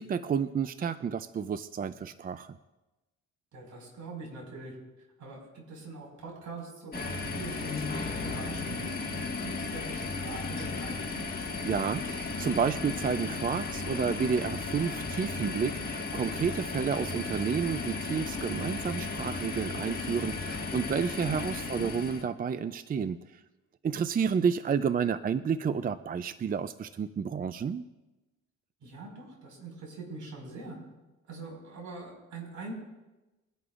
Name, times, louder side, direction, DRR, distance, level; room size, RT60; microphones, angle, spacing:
voice 1, 0.0-2.6 11.4-23.4 23.8-27.8, right 6 dB, 30° right, 13 dB, 0.4 m, -30 dB
voice 2, 3.5-4.7 5.2-11.3 21.5-21.9 28.8-30.8 31.3-32.7, right 3 dB, 70° right, 0 dB, 5.1 m, -43 dB
sound 1, 6.9-22.2, left 3 dB, 30° left, 1.8 m, -35 dB
22.5 x 11.0 x 2.5 m, 1.1 s
cardioid pair, 90°, 30 cm